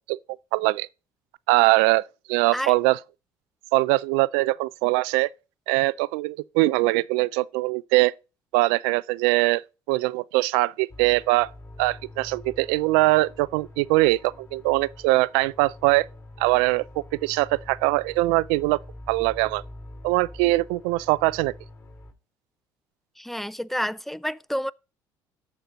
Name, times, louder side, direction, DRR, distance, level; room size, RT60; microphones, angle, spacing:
voice 1, 0.5-0.9 1.5-2.0 2.3-3.0 3.7-5.3 5.7-8.1 8.5-9.6 9.9-11.5 11.8-16.1 16.4-16.8 17.2-18.8 19.1-19.6 20.0-21.5, right 21 dB, 90° right, 0.4 m, -22 dB
sound 1, 10.9-22.1, left 1 dB, 30° left, 4.0 m, -45 dB
voice 2, 23.2-24.7, equal, ahead, 0.4 m, -29 dB
13.0 x 4.4 x 5.1 m
supercardioid pair, 85°, 9 cm